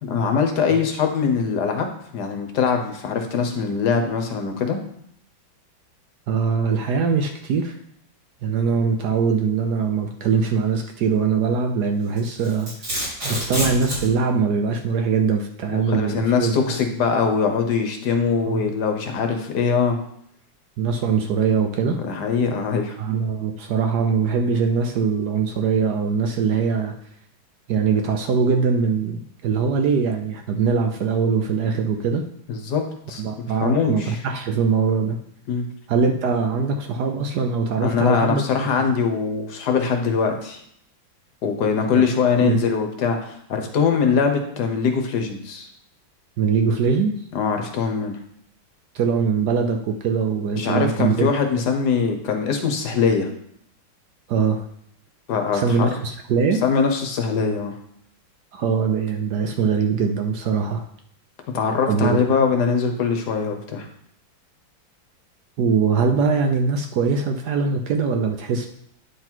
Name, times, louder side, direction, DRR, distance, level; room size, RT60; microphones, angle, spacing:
voice 1, 0.0-1.9 2.1-4.8 15.7-20.0 22.1-23.0 32.5-32.8 33.1-33.2 33.6-34.2 35.5-35.7 37.8-40.6 41.4-45.7 47.3-48.2 50.5-53.3 55.3-55.9 56.6-57.7 61.5-63.9, left 5 dB, 65° left, 5 dB, 1.3 m, -22 dB
voice 2, 6.3-7.8 8.4-12.7 13.3-16.8 18.5-18.7 20.8-22.0 23.0-26.9 27.7-32.2 33.2-35.2 35.9-38.4 42.4-42.6 46.4-47.2 48.9-51.3 54.3-54.6 55.5-56.6 58.5-60.8 61.9-62.2 65.6-68.7, right 5 dB, 65° right, 4 dB, 1.1 m, -22 dB
Domestic sounds home sounds, 12.2-14.1, equal, 85° right, 4.5 m, -26 dB
9.4 x 3.9 x 4.5 m, 0.69 s
omnidirectional pair, 2.1 m